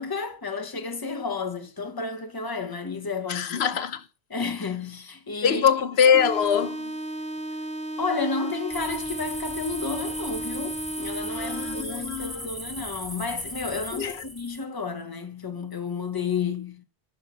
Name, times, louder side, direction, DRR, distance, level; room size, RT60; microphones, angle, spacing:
voice 1, 0.0-3.6 4.3-5.7 8.0-16.9, left 4 dB, 20° left, 1.0 m, -31 dB
voice 2, 3.3-4.0 5.4-6.9 11.3-12.5 13.9-14.2, left 7 dB, 85° left, 1.0 m, -23 dB
sound 1, 6.1-12.1, right 1 dB, 75° right, 1.4 m, -34 dB
sound 2, 8.7-14.6, equal, ahead, 0.5 m, -37 dB
10.0 x 5.6 x 6.1 m
omnidirectional pair, 1.0 m